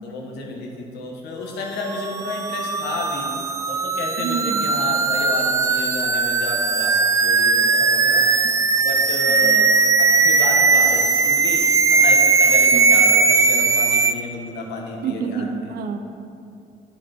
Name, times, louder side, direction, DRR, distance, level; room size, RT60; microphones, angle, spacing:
voice 1, 0.0-3.3 3.7-8.3 8.8-9.7 10.0-11.6 11.9-15.5, left 3 dB, 80° left, 0 dB, 1.5 m, -31 dB
sound 1, 1.9-14.1, right 4 dB, 20° right, 0.3 m, -18 dB
voice 2, 4.2-4.7 9.3-9.6 12.7-13.1 15.0-16.0, right 6 dB, 60° right, 6 dB, 0.8 m, -28 dB
10.0 x 5.9 x 4.4 m, 2.6 s
cardioid pair, 110°, 17 cm